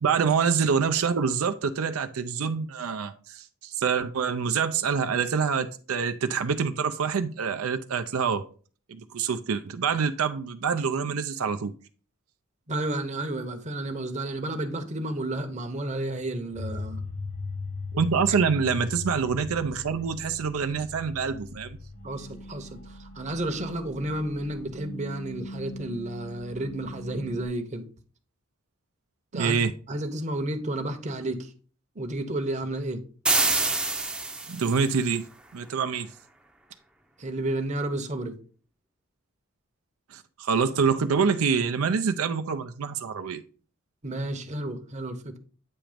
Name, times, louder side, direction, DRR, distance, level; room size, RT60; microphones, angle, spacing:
voice 1, 0.0-8.4 8.9-11.7 17.9-21.8 29.3-29.7 34.5-35.3 35.5-36.1 40.1-43.4, right 6 dB, 80° right, 0.5 m, -26 dB
voice 2, 12.7-17.0 18.3-18.4 22.0-27.9 29.3-31.5 32.0-33.0 37.2-38.3 44.0-45.4, right 1 dB, 35° right, 0.8 m, -31 dB
sound 1, 16.5-27.5, left 3 dB, 50° left, 1.2 m, -39 dB
sound 2, 33.3-34.8, right 2 dB, 5° right, 0.6 m, -25 dB
8.7 x 3.0 x 5.0 m
head